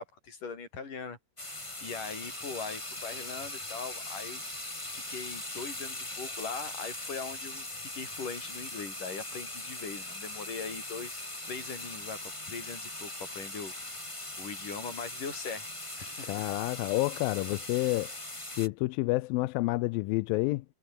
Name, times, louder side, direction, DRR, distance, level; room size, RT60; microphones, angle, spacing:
voice 1, 0.0-4.4 4.9-12.2 12.5-13.7 14.4-15.7 16.0-16.4, left 5 dB, 65° left, 6.6 m, -41 dB
sound 1, 1.4-18.7, left 1 dB, 10° left, 2.3 m, -40 dB
voice 2, 16.2-18.1 18.6-20.7, left 21 dB, 90° left, 2.4 m, -29 dB
omnidirectional pair, 4.0 m